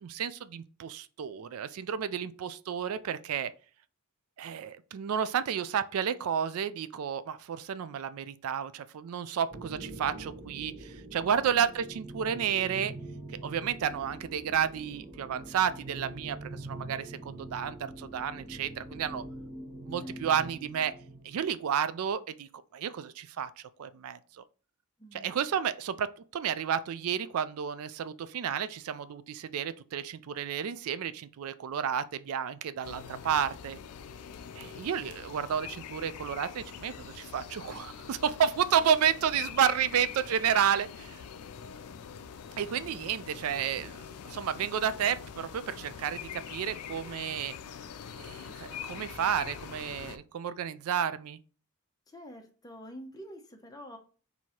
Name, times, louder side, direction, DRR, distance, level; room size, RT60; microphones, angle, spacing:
voice 1, 0.0-3.5 4.4-12.9 13.4-19.2 19.9-20.9 21.2-23.5 23.8-24.2 25.1-26.1 26.3-33.8 34.6-41.2 42.6-44.0 44.3-47.5 48.2-51.4, right 8 dB, 70° right, 0.3 m, -31 dB
sound 1, 9.5-21.5, right 1 dB, 20° right, 1.0 m, -44 dB
voice 2, 11.2-11.7 20.0-20.2 25.0-25.4 52.1-54.0, equal, 15° left, 0.8 m, -47 dB
sound 2, 32.8-50.2, left 7 dB, 85° left, 0.4 m, -44 dB
4.6 x 2.7 x 4.2 m
head